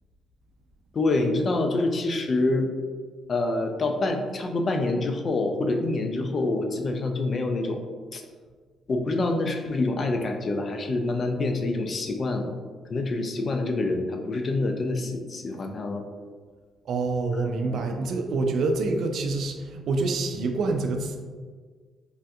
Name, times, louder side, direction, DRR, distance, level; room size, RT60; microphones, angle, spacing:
voice 1, 0.9-2.7 3.3-7.8 8.1-8.2 8.9-12.5 12.9-16.0 17.7-17.8, left 2 dB, 45° left, 4 dB, 0.4 m, -26 dB
voice 2, 16.9-21.2, right 3 dB, 70° right, 5 dB, 0.3 m, -26 dB
3.4 x 2.6 x 2.3 m, 1.5 s
cardioid pair, 90°, 0 cm